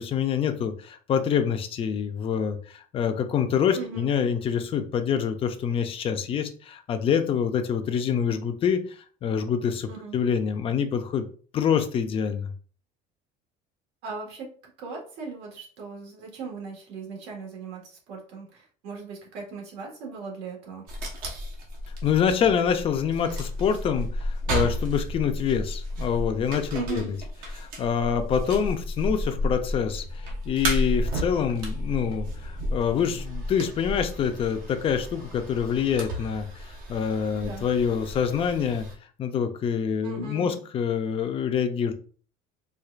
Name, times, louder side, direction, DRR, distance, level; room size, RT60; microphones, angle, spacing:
voice 1, 0.0-8.8 9.2-11.2 11.5-12.5 22.0-27.2 27.6-38.9 39.2-41.9, left 7 dB, 30° left, 7 dB, 0.4 m, -26 dB
voice 2, 3.7-4.1 9.9-10.1 14.0-14.5 14.8-20.9 26.7-27.1 37.3-37.7 40.0-40.6, right 5 dB, 70° right, -1 dB, 1.6 m, -38 dB
sound 1, 20.9-38.9, equal, 55° right, 1.0 m, -32 dB
4.4 x 2.4 x 2.4 m, 0.42 s
cardioid pair, 145°, 18 cm